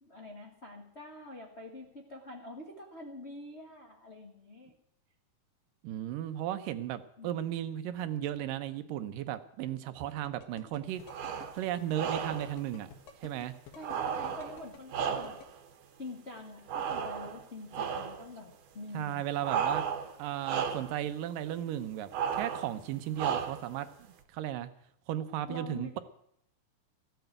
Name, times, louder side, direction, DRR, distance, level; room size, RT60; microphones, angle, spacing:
voice 1, 0.0-4.7 7.2-7.5 13.7-15.4 16.0-19.3 25.5-26.0, left 2 dB, 45° left, 0 dB, 0.8 m, -46 dB
voice 2, 5.8-11.0 11.5-12.9 13.2-13.5 18.9-19.8 20.2-23.9 24.3-24.7 25.1-26.0, right 12 dB, 80° right, 11 dB, 2.3 m, -35 dB
sound 1, 10.2-15.5, left 9 dB, 80° left, 3.2 m, -50 dB
sound 2, 11.0-11.6 11.9-12.6 13.8-15.6 16.7-17.4 17.7-18.2 19.4-20.2 20.4-21.0 22.1-22.7 23.2-23.8, right 7 dB, 60° right, 1.9 m, -34 dB
14.5 x 8.0 x 8.9 m, 0.72 s
omnidirectional pair, 4.0 m